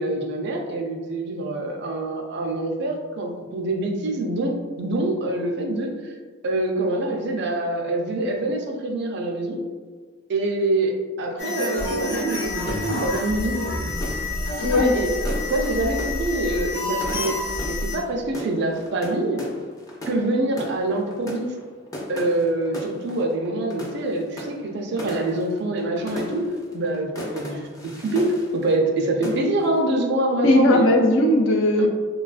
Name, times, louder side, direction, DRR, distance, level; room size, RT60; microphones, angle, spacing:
voice 1, 0.0-6.1 6.4-9.6 10.3-13.6 14.6-15.1 15.5-17.4 17.7-19.4 20.1-21.6 22.1-26.5 26.7-30.9 31.8-31.9, right 2 dB, 60° right, 2 dB, 0.4 m, -25 dB
sound 1, 11.4-18.0, left 2 dB, 50° left, 0.9 m, -28 dB
sound 2, 12.6-29.0 29.2-29.8, left 1 dB, 20° left, 0.4 m, -37 dB
voice 2, 14.6-14.9 30.4-31.9, left 1 dB, 75° left, 2 dB, 0.4 m, -17 dB
3.3 x 2.2 x 2.3 m, 1.5 s
head